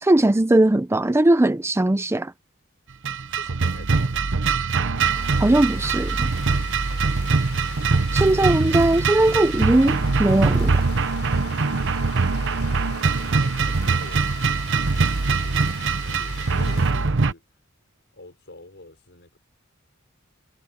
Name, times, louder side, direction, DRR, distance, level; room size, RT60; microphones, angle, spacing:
voice 1, 0.0-2.3 5.4-6.3 8.1-10.7, right 1 dB, 10° right, 0.5 m, -19 dB
sound 1, 3.0-17.3, right 4 dB, 60° right, 0.9 m, -22 dB
voice 2, 3.3-4.4 5.7-6.0 7.5-8.6 12.3-14.5 15.3-17.4 18.1-19.4, left 2 dB, 55° left, 5.5 m, -47 dB
Rain, 5.2-16.9, left 7 dB, 90° left, 3.4 m, -42 dB
sound 2, 8.4-10.4 11.1-11.2 11.8-11.9 13.8-16.2, left 1 dB, 25° left, 5.1 m, -51 dB
head